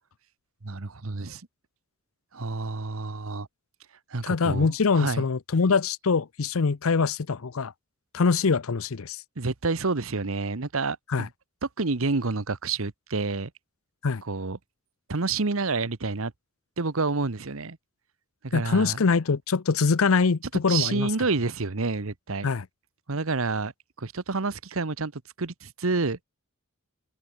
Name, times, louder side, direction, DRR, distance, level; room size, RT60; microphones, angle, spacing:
voice 1, 0.6-1.4 2.3-3.5 4.1-5.3 9.4-11.3 11.6-13.5 14.2-14.6 15.1-16.3 16.8-17.8 18.4-19.0 20.7-22.5 23.1-23.7 24.0-26.2, right 3 dB, 75° right, 1.1 m, -29 dB
voice 2, 4.2-7.7 8.1-9.2 11.1-11.3 14.0-14.2 18.5-21.1 22.4-22.6, left 4 dB, 80° left, 0.6 m, -24 dB
head